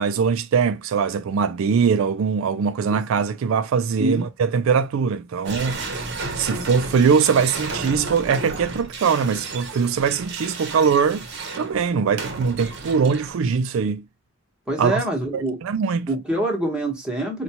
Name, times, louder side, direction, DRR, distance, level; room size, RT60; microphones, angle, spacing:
voice 1, 0.0-5.8 6.4-11.3 11.6-14.1 14.8-15.0 15.3-16.1, right 6 dB, 70° right, 0.3 m, -21 dB
sound 1, 5.4-13.6, right 3 dB, 50° right, 0.8 m, -33 dB
voice 2, 14.7-15.6 16.1-17.4, right 1 dB, 5° right, 1.0 m, -25 dB
4.1 x 2.3 x 2.8 m
head